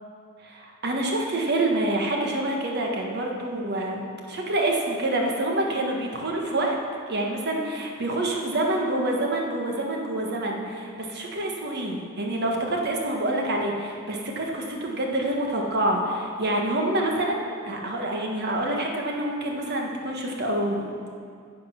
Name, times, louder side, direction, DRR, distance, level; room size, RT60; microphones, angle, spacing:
voice 1, 0.4-6.8 7.1-20.9, right 1 dB, 50° right, 0 dB, 1.4 m, -27 dB
9.6 x 7.9 x 5.9 m, 2.2 s
head